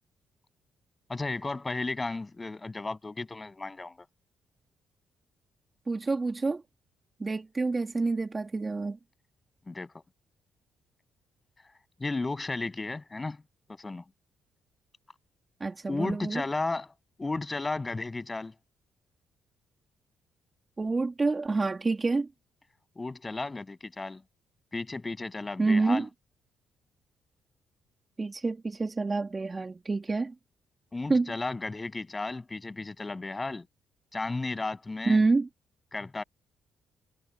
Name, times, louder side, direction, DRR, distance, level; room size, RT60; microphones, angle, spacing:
voice 1, 1.1-4.1 9.7-10.0 12.0-13.4 13.7-14.0 15.9-16.9 17.2-18.5 23.0-24.2 24.7-26.1 30.9-33.7 34.1-35.2 35.9-36.2, left 3 dB, 20° left, 7.8 m, -34 dB
voice 2, 5.9-6.6 7.2-9.0 15.6-16.4 20.8-22.3 25.6-26.1 28.2-30.3 31.1-31.3 35.1-35.5, right 3 dB, 25° right, 2.6 m, -27 dB
cardioid pair, 90°, 0 cm